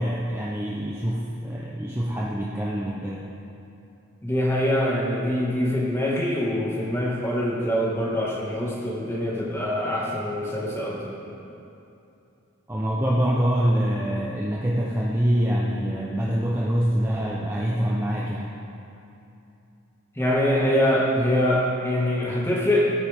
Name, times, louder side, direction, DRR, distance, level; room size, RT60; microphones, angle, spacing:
voice 1, 0.0-3.2 12.7-18.4, equal, 10° right, -5 dB, 0.8 m, -25 dB
voice 2, 4.2-11.1 20.2-22.8, left 1 dB, 10° left, -5 dB, 2.0 m, -24 dB
17.0 x 9.5 x 3.7 m, 2.8 s
head